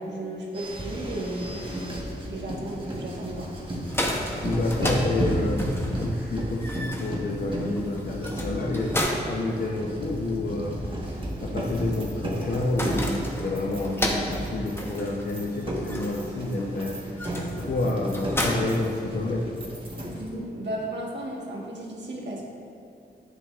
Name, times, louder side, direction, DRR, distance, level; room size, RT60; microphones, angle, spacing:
voice 1, 0.0-1.7 2.2-3.5 20.1-22.4, right 1 dB, 80° right, -3 dB, 1.5 m, -34 dB
sound 1, 0.5-20.3, equal, 30° right, 1.4 m, -33 dB
sound 2, 3.7-19.6, left 1 dB, 15° left, 0.8 m, -34 dB
voice 2, 4.4-9.0 9.2-19.5, left 2 dB, 60° left, -2 dB, 0.8 m, -29 dB
10.5 x 8.0 x 2.5 m, 2.6 s
wide cardioid pair, 115°, 18 cm